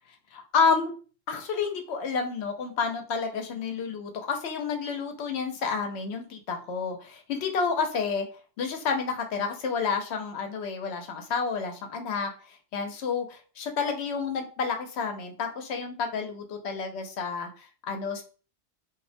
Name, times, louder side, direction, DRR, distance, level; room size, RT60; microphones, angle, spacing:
voice 1, 0.3-0.9 1.3-8.3 8.6-12.3 12.7-18.2, left 5 dB, 75° left, 4 dB, 0.8 m, -30 dB
2.4 x 2.1 x 2.5 m, 0.37 s
omnidirectional pair, 1.1 m